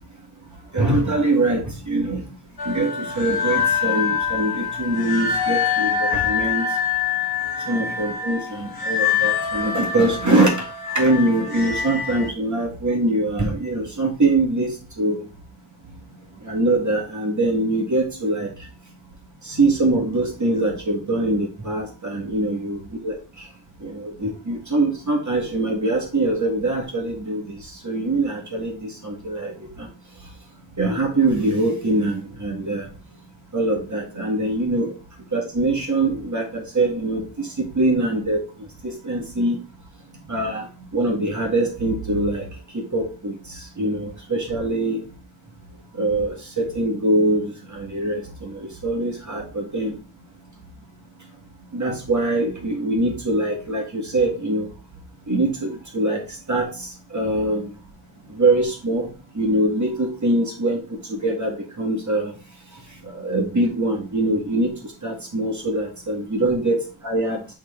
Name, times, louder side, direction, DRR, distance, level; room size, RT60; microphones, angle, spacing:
voice 1, 0.7-2.2 2.6-6.7 7.7-10.6 10.9-14.7 15.0-15.2 16.4-18.5 19.4-23.1 23.8-29.9 30.8-32.9 33.5-34.9 35.3-38.4 38.8-39.6 40.3-40.7 40.9-42.5 42.7-45.0 45.9-50.0 51.7-54.7 55.3-57.7 58.3-59.1 59.3-62.3 63.0-66.8 67.0-67.4, right 2 dB, 35° right, -1 dB, 1.8 m, -23 dB
sound 1, 2.6-12.3, left 7 dB, 50° left, 0.9 m, -25 dB
5.9 x 3.8 x 4.3 m, 0.35 s
wide cardioid pair, 85°, 47 cm